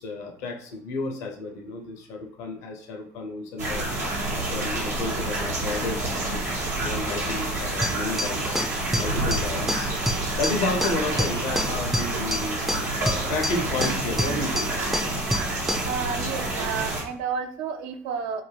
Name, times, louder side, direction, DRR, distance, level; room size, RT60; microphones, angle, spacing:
voice 1, 0.0-3.9 4.3-10.0 10.4-13.0 13.3-15.9, left 2 dB, 70° left, 3 dB, 0.7 m, -32 dB
sound 1, 3.6-17.0, right 2 dB, 85° right, 0.8 m, -28 dB
sound 2, 7.8-16.0, equal, 5° right, 0.4 m, -29 dB
voice 2, 15.8-18.4, right 6 dB, 65° right, 7 dB, 0.4 m, -31 dB
2.6 x 2.1 x 3.3 m, 0.64 s
hypercardioid pair, 65°, 8 cm